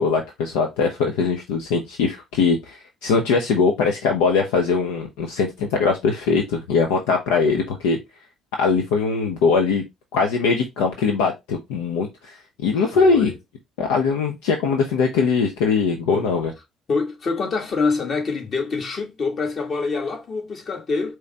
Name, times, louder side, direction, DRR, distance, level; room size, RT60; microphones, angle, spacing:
voice 1, 0.0-8.0 8.6-9.8 10.1-13.3 13.8-16.5, left 5 dB, 75° left, 0.6 m, -21 dB
voice 2, 12.7-13.4 16.1-16.3 16.9-21.1, left 4 dB, 50° left, 1.7 m, -25 dB
4.7 x 3.0 x 3.3 m
hypercardioid pair, 50°, 0 cm